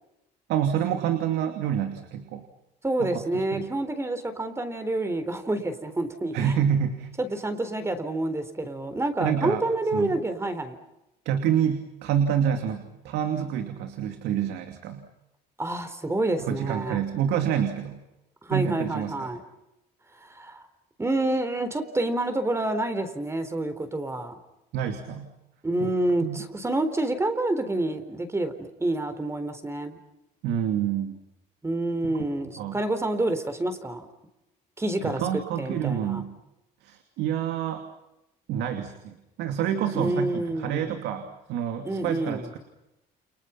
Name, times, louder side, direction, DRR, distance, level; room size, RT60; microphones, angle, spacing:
voice 1, 0.5-2.4 3.0-3.7 6.3-7.1 9.2-9.6 9.9-10.2 11.2-15.1 16.4-18.0 18.5-19.3 24.7-25.3 25.8-25.9 26.2-26.4 30.4-31.2 32.1-32.2 32.6-32.8 35.0-36.3 36.8-37.8 38.5-42.6, right 9 dB, 85° right, 6 dB, 2.7 m, -28 dB
voice 2, 2.8-6.5 7.2-10.8 15.6-17.0 18.4-19.4 20.3-20.6 21.0-24.3 25.6-30.0 31.6-34.1 34.8-36.2 39.9-40.9 41.8-42.5, right 2 dB, 15° right, 9 dB, 3.9 m, -28 dB
30.0 x 29.0 x 5.8 m, 0.91 s
cardioid pair, 110°, 17 cm